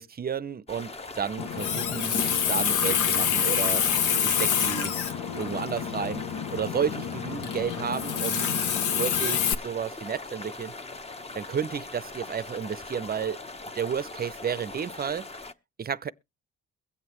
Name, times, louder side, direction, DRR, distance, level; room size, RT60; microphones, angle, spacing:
voice 1, 0.0-3.8 4.2-4.9 5.4-6.2 6.5-8.6 8.9-10.7 11.3-13.4 13.7-15.2 15.8-16.1, right 7 dB, 30° right, 0.6 m, -32 dB
sound 1, 0.7-15.5, left 3 dB, 20° left, 0.9 m, -41 dB
Water tap faucet, 1.4-9.5, left 8 dB, 85° left, 1.0 m, -27 dB
22.5 x 7.8 x 3.0 m
cardioid pair, 90°, 30 cm